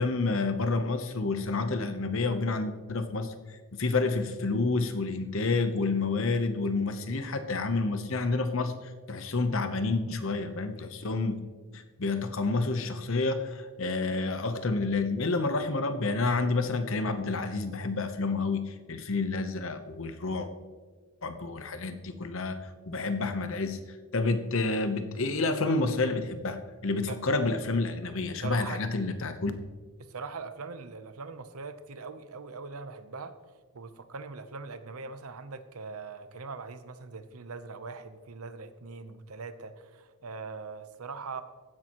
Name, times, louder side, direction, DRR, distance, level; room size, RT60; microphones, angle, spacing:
voice 1, 0.0-8.7 9.1-11.4 11.7-20.5 21.2-22.6 22.9-23.8 24.1-29.5, left 3 dB, 60° left, 9 dB, 0.9 m, -29 dB
voice 2, 28.4-28.8 30.0-33.4 33.7-41.4, right 4 dB, 75° right, 11 dB, 0.8 m, -41 dB
15.0 x 10.5 x 3.0 m, 1.4 s
head